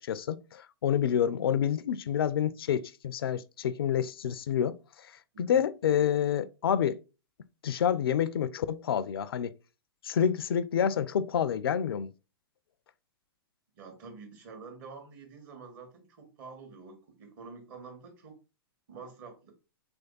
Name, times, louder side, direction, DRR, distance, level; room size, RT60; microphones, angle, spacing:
voice 1, 0.0-4.8 5.4-7.0 7.6-9.5 10.0-12.1, left 9 dB, 70° left, 0.4 m, -28 dB
voice 2, 13.7-18.3 18.9-19.5, right 4 dB, 50° right, 1.6 m, -47 dB
3.4 x 3.2 x 3.9 m
figure-of-eight pair, 110°, 13 cm